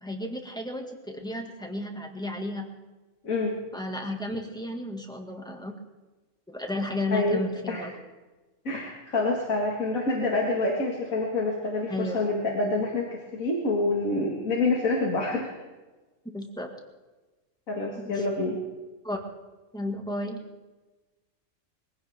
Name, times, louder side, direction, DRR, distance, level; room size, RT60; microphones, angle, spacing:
voice 1, 0.0-2.7 3.7-5.7 6.5-7.9 11.9-12.2 16.3-16.7 18.0-18.2 19.0-19.2 19.7-20.4, left 1 dB, 5° left, 2 dB, 1.9 m, -33 dB
voice 2, 3.2-3.6 7.1-7.4 7.7-7.9 8.6-15.5 17.7-18.6, left 2 dB, 85° left, -2 dB, 2.4 m, -27 dB
22.5 x 16.0 x 3.6 m, 1.2 s
omnidirectional pair, 1.4 m